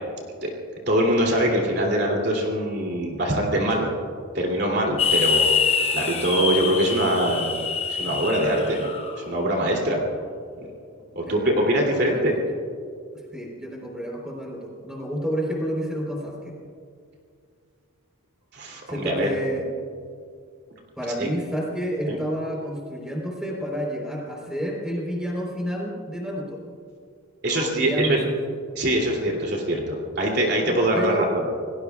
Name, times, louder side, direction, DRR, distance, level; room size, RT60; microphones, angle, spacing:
voice 1, 0.9-3.9 4.3-5.5 5.9-7.5 7.9-8.9 9.2-10.0 11.1-12.4 18.5-19.3 21.2-21.3 22.1-22.2 27.4-28.2 28.7-31.5, right 1 dB, 50° right, -1 dB, 2.8 m, -23 dB
sound 1, 5.0-9.2, left 6 dB, 25° left, 1.1 m, -25 dB
voice 2, 11.3-12.3 13.3-16.5 18.9-19.6 21.0-26.6 27.5-28.5 30.6-31.3, equal, 5° right, -2 dB, 3.7 m, -30 dB
28.0 x 19.5 x 2.4 m, 2.3 s
head